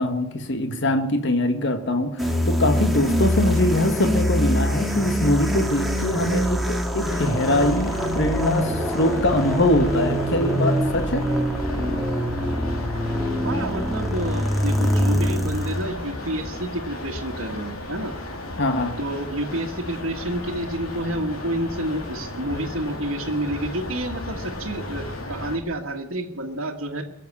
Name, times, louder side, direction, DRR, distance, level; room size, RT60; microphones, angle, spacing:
voice 1, 0.0-11.2 18.6-19.0, left 1 dB, 55° left, 7 dB, 1.6 m, -23 dB
sound 1, 2.2-15.8, equal, ahead, 1.9 m, -24 dB
sound 2, 7.0-25.6, left 1 dB, 90° left, 3.4 m, -35 dB
voice 2, 11.7-12.0 13.4-18.1 19.0-27.0, right 1 dB, 65° right, -1 dB, 1.6 m, -29 dB
22.5 x 7.6 x 8.5 m, 0.88 s
head